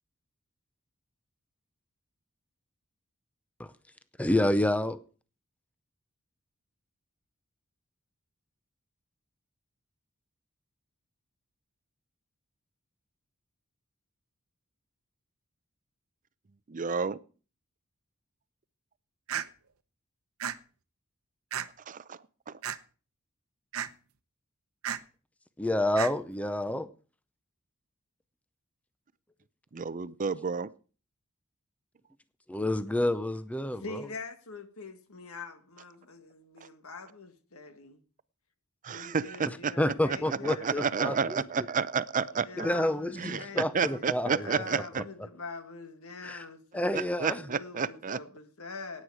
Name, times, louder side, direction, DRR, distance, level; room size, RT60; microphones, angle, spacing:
voice 1, 4.2-5.0 25.6-26.9 32.5-34.0 39.8-41.6 42.6-44.6 46.2-46.4 46.7-47.4, left 1 dB, 5° left, 0.6 m, -29 dB
voice 2, 16.7-17.2 21.9-22.6 29.7-30.7 38.8-42.7 43.2-43.5 43.7-45.0 46.9-48.2, right 6 dB, 35° right, 0.5 m, -31 dB
sound 1, 19.3-19.5 20.4-20.6 21.5-21.7 22.6-22.8 23.7-23.9 24.8-25.0 25.9-26.1, right 9 dB, 70° right, 0.8 m, -32 dB
voice 3, 33.7-38.0 38.9-40.9 42.5-49.0, left 3 dB, 80° left, 1.7 m, -44 dB
16.0 x 9.5 x 4.8 m
head